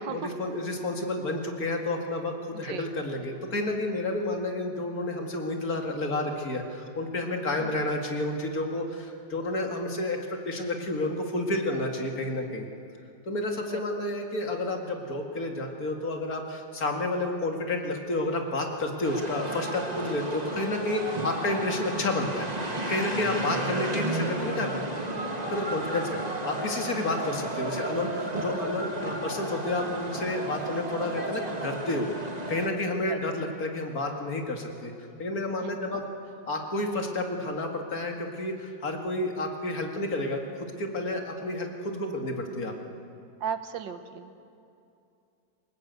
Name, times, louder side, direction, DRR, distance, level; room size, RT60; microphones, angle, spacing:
voice 1, 0.0-12.7 13.3-22.5 22.8-24.7 25.5-26.2 26.4-32.1 32.5-34.9 35.2-36.1 36.5-42.7, left 2 dB, 55° left, 3 dB, 2.5 m, -30 dB
voice 2, 7.6-7.9 13.7-13.8 33.1-33.2 35.6-36.0 43.4-44.3, right 7 dB, 85° right, 9 dB, 1.8 m, -36 dB
sound 1, 19.0-32.7, right 2 dB, 20° right, 2.0 m, -33 dB
28.0 x 18.5 x 8.2 m, 2.6 s
omnidirectional pair, 1.9 m